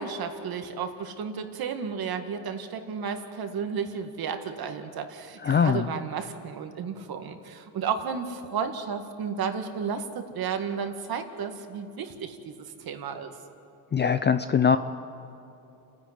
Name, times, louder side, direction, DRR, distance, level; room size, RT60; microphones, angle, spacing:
voice 1, 0.0-13.3, right 6 dB, 50° right, 6 dB, 2.0 m, -33 dB
voice 2, 5.4-5.9 13.9-14.8, left 7 dB, 25° left, 11 dB, 0.5 m, -22 dB
29.0 x 10.5 x 9.4 m, 2.8 s
cardioid pair, 105°, 47 cm